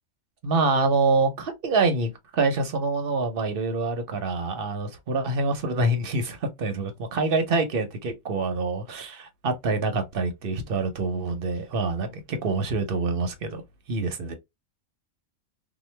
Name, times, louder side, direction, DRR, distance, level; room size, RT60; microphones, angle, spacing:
voice 1, 0.4-13.6 13.9-14.3, right 3 dB, 50° right, 0.7 m, -26 dB
2.9 x 2.2 x 3.1 m
omnidirectional pair, 1.4 m